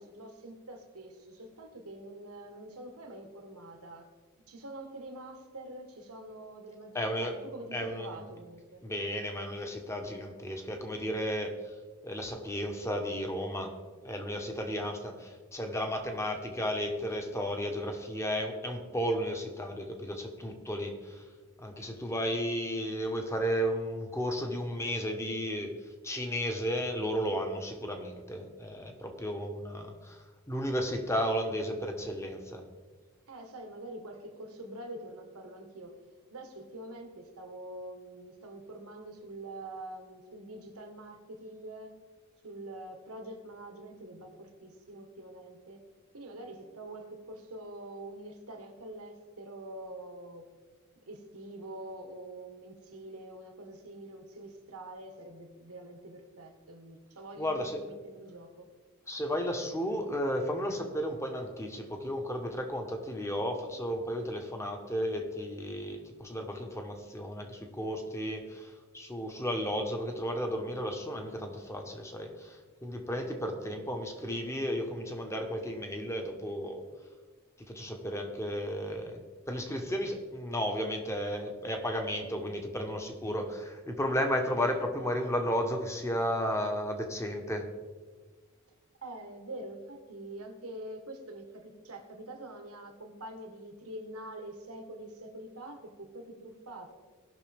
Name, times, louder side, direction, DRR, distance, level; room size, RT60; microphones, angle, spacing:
voice 1, 0.0-4.1 4.5-8.8 33.3-35.9 36.3-41.9 42.4-45.8 46.1-50.5 51.1-58.7 73.2-73.9 89.0-96.9, right 1 dB, 80° right, 4 dB, 1.5 m, -45 dB
voice 2, 6.9-7.3 7.7-8.2 8.8-11.7 12.0-13.7 14.0-21.2 21.6-25.7 26.0-32.6 57.4-57.9 59.1-76.8 77.7-79.2 79.5-87.7, equal, 15° left, 4 dB, 1.1 m, -33 dB
18.0 x 6.1 x 3.5 m, 1.5 s
head